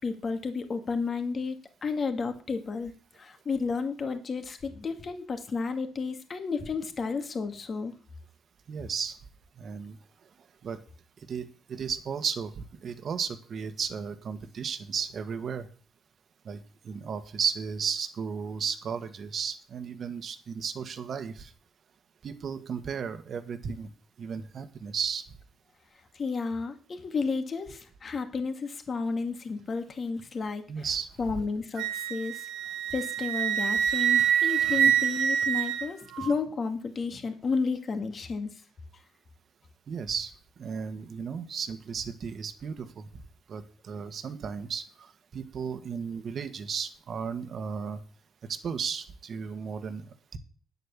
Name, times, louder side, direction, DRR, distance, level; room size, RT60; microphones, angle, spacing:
voice 1, 0.0-7.9 26.1-30.9 31.2-32.5 32.9-38.5, left 4 dB, 45° left, 6 dB, 2.3 m, -32 dB
voice 2, 8.7-9.2 9.6-10.0 10.6-10.8 11.3-15.7 16.4-21.5 22.2-23.9 24.2-25.2 30.7-31.1 39.9-40.3 40.6-43.1 43.5-48.0 48.5-50.4, right 6 dB, 55° right, 10 dB, 1.5 m, -34 dB
Wind instrument woodwind instrument, 31.8-36.4, right 9 dB, 85° right, 1.3 m, -26 dB
10.0 x 8.2 x 7.4 m, 0.41 s
cardioid pair, 90°, 0 cm